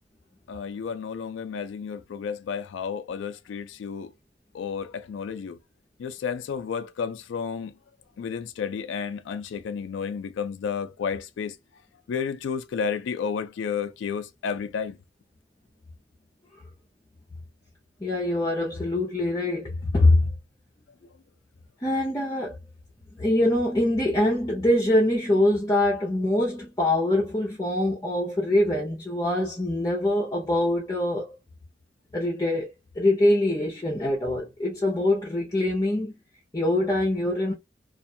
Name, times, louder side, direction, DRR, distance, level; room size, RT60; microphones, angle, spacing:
voice 1, 0.5-4.1 4.5-5.6 6.0-7.7 8.2-11.6 12.1-15.0, left 6 dB, 80° left, 0.3 m, -31 dB
voice 2, 18.0-20.3 21.8-22.6 23.1-31.3 32.1-36.1 36.5-37.5, left 1 dB, 20° left, 0.6 m, -24 dB
2.5 x 2.2 x 2.7 m
head